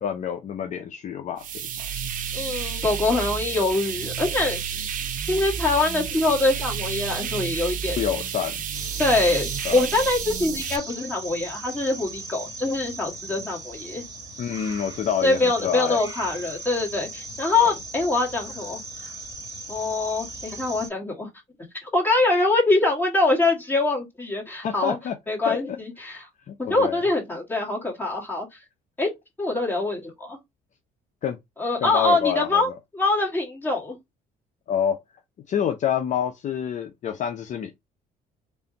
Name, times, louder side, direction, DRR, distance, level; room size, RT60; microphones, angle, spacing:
voice 1, 0.0-1.4 1.8-1.9 8.0-8.6 9.6-9.8 14.4-16.0 17.6-17.7 24.6-25.1 25.5-25.6 26.5-27.0 31.2-31.4 31.8-32.7 34.7-35.0 35.5-37.8, left 8 dB, 45° left, 0.5 m, -27 dB
sound 1, 1.4-10.8, right 8 dB, 50° right, 0.7 m, -31 dB
voice 2, 2.3-5.0 5.3-8.0 9.0-14.0 15.2-19.1 19.7-21.3 21.8-25.0 25.3-26.2 26.6-28.6 29.0-29.1 29.4-30.4 31.6-34.0, left 2 dB, 10° left, 1.9 m, -24 dB
sound 2, 8.7-20.9, right 2 dB, 20° right, 1.6 m, -38 dB
3.4 x 2.6 x 3.9 m
cardioid pair, 110°, 17 cm